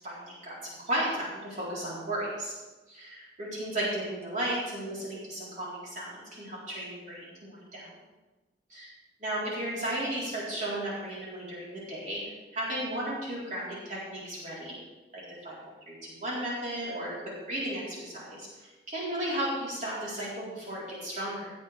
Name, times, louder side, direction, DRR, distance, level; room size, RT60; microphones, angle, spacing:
voice 1, 0.0-2.5 2.9-7.9 8.7-8.9 9.2-14.7 15.1-15.6 15.9-21.5, right 1 dB, 45° right, -7 dB, 4.2 m, -34 dB
18.0 x 9.3 x 3.5 m, 1.2 s
head